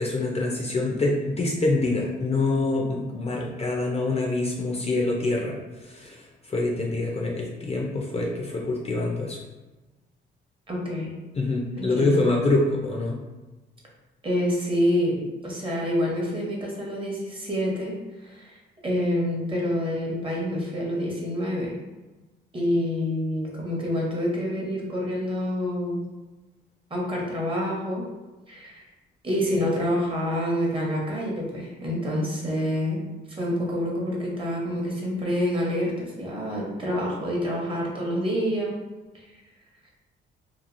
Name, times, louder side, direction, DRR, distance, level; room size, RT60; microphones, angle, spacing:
voice 1, 0.0-9.4 11.3-13.2, left 2 dB, 30° left, -2 dB, 0.5 m, -25 dB
voice 2, 10.7-11.1 11.8-12.2 14.2-17.9 18.2-21.8 22.5-26.0 26.9-28.0 28.5-28.8 29.2-33.0 33.4-38.7, equal, 25° right, -3 dB, 0.9 m, -27 dB
2.9 x 2.4 x 2.5 m, 1.2 s
cardioid pair, 90°, 20 cm